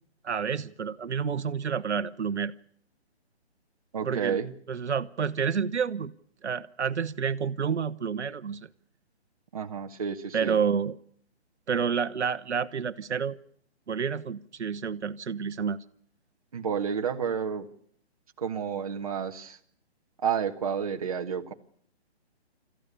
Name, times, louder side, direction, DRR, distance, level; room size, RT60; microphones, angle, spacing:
voice 1, 0.2-2.5 4.0-4.4 4.7-6.1 6.4-8.7 10.3-11.0 11.7-13.4 13.9-15.8, right 6 dB, 85° right, 1.1 m, -29 dB
voice 2, 3.9-4.5 9.5-10.6 16.5-17.7 18.4-19.6 20.2-21.5, right 7 dB, 35° right, 1.3 m, -30 dB
27.0 x 14.5 x 6.8 m
hypercardioid pair, 175°, 33 cm